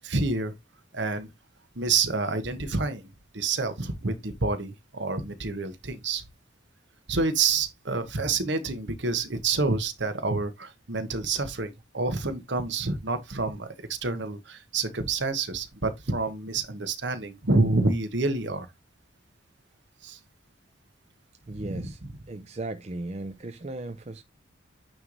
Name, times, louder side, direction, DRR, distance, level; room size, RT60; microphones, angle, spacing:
voice 1, 0.0-0.5 0.9-1.3 1.7-6.2 7.1-18.7 20.0-20.2 21.6-21.9, right 3 dB, 60° right, 1.2 m, -28 dB
voice 2, 21.5-22.0 22.3-24.2, right 2 dB, 30° right, 0.5 m, -36 dB
9.2 x 3.2 x 3.9 m
head